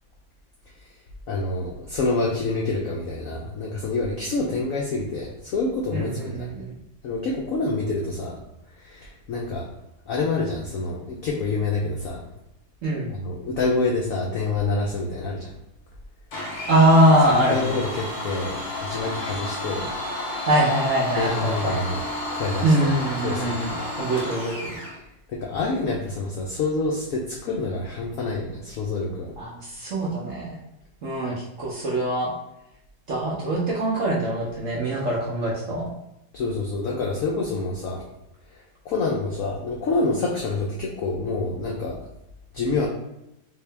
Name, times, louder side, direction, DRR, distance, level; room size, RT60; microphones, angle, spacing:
voice 1, 1.3-6.7 7.0-8.4 8.8-9.7 10.1-12.3 13.1-15.5 17.5-19.9 21.1-22.0 22.3-22.9 23.2-23.8 25.3-29.3 36.3-38.1 38.5-42.0 42.5-42.9, left 3 dB, 90° left, -2 dB, 0.7 m, -27 dB
voice 2, 5.9-6.7 12.8-13.1 16.7-17.8 20.4-21.8 22.6-23.7 24.0-24.5 29.4-30.6 31.0-32.3 33.1-35.9, right 1 dB, 60° right, -5 dB, 0.8 m, -22 dB
Domestic sounds home sounds, 16.3-25.0, left 1 dB, 50° left, 1.0 m, -32 dB
3.6 x 2.7 x 3.3 m, 0.87 s
omnidirectional pair, 2.1 m